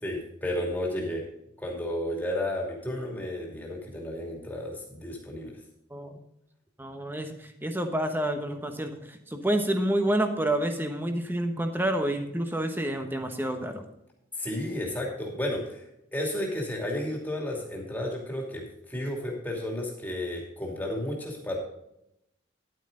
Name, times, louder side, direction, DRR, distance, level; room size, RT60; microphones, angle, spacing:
voice 1, 0.0-1.2 1.6-5.6 14.3-15.8 16.1-21.6, left 1 dB, 10° left, -2 dB, 2.6 m, -32 dB
voice 2, 6.8-13.9, right 1 dB, 10° right, 5 dB, 1.1 m, -29 dB
11.0 x 9.2 x 3.9 m, 0.81 s
head